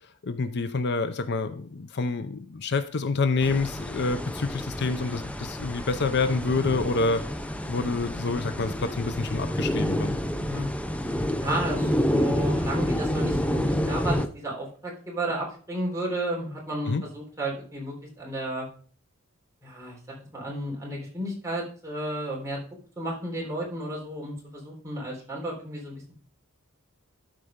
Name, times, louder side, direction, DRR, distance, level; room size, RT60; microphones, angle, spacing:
voice 1, 0.2-7.2 7.7-10.2 16.9-17.0, left 3 dB, 50° left, 10 dB, 0.6 m, -27 dB
sound 1, 3.4-14.3, equal, 5° left, 0.5 m, -29 dB
voice 2, 10.3-10.7 11.4-18.7 19.6-22.6 23.0-26.1, right 1 dB, 15° right, -3 dB, 3.6 m, -33 dB
12.5 x 4.8 x 5.1 m, 0.43 s
head